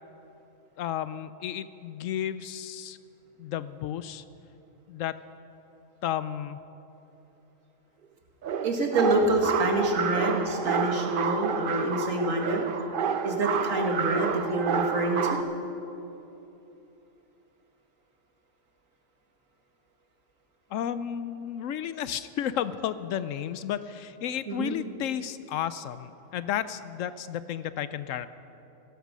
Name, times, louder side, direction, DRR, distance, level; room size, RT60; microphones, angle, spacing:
voice 1, 0.8-3.0 3.4-4.2 4.9-5.2 6.0-6.6 20.7-28.3, left 10 dB, 75° left, 14 dB, 0.9 m, -32 dB
sound 1, 8.4-15.4, right 6 dB, 50° right, 0.7 m, -29 dB
voice 2, 8.6-12.6 13.2-15.4 24.5-24.8, right 2 dB, 70° right, 2 dB, 2.1 m, -27 dB
16.0 x 13.0 x 6.2 m, 3.0 s
omnidirectional pair, 1.4 m